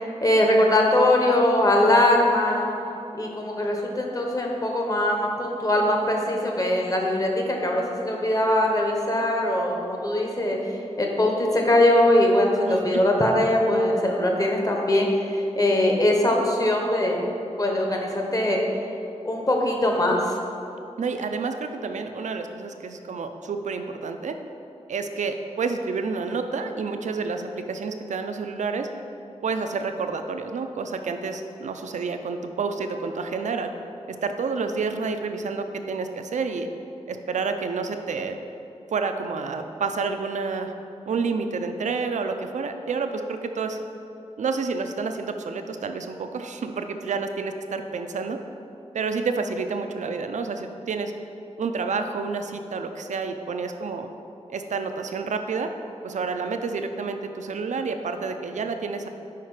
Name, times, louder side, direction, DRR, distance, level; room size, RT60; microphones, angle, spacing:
voice 1, 0.0-2.8 3.1-17.2 17.6-18.6 19.2-20.3, left 1 dB, 30° left, 0 dB, 0.9 m, -21 dB
voice 2, 12.7-13.0 21.0-24.4 24.9-28.9 29.4-33.7 34.2-36.7 37.1-38.4 38.9-40.7 41.1-43.8 44.4-48.4 48.9-51.1 51.6-54.1 54.5-55.7 56.0-59.1, right 4 dB, 85° right, 7 dB, 0.4 m, -29 dB
5.8 x 4.9 x 4.7 m, 2.8 s
wide cardioid pair, 105°, 12 cm